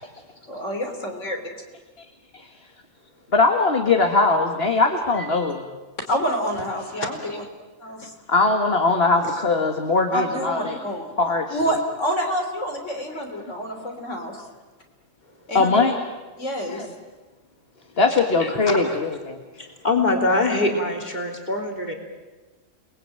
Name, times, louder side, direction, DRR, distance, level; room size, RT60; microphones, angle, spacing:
voice 1, 0.5-1.7 5.1-5.2 6.1-7.4 7.8-8.1 10.1-11.1 11.5-14.4 15.5-15.9 16.4-16.8, equal, 65° left, 3 dB, 3.7 m, -28 dB
voice 2, 3.3-5.6 8.3-10.8 11.2-11.6 13.1-13.2 15.5-16.0 16.7-16.9 18.0-19.4, left 3 dB, 50° left, 3 dB, 2.0 m, -20 dB
voice 3, 18.0-19.0 19.6-21.9, left 2 dB, 35° left, 1 dB, 3.7 m, -25 dB
30.0 x 20.0 x 9.0 m, 1.3 s
omnidirectional pair, 1.4 m